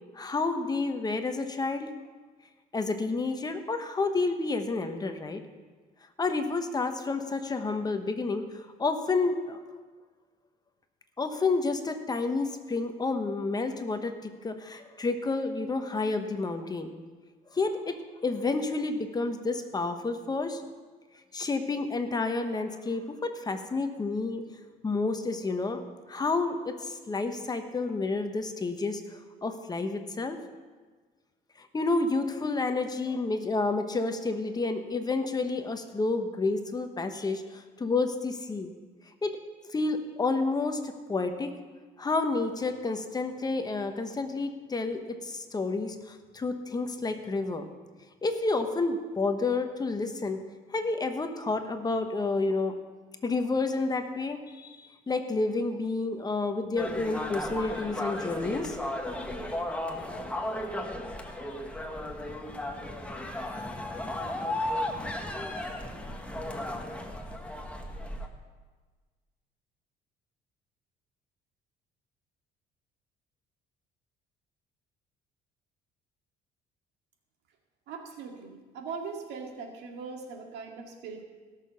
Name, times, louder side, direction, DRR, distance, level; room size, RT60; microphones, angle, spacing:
voice 1, 0.1-1.9 2.7-5.4 6.2-9.6 11.2-16.9 17.5-18.0 18.2-20.6 21.3-24.4 24.8-25.8 26.1-30.4 31.6-38.7 39.2-39.4 39.7-41.5 42.0-47.7 48.2-50.4 50.7-52.8 53.2-58.8 60.5-60.7, left 3 dB, 25° left, 7 dB, 1.0 m, -30 dB
sound 1, 56.8-68.3, left 1 dB, 5° left, 1.3 m, -35 dB
voice 2, 77.9-81.2, right 5 dB, 80° right, 2 dB, 2.1 m, -40 dB
17.5 x 6.7 x 5.8 m, 1.4 s
cardioid pair, 110°, 17 cm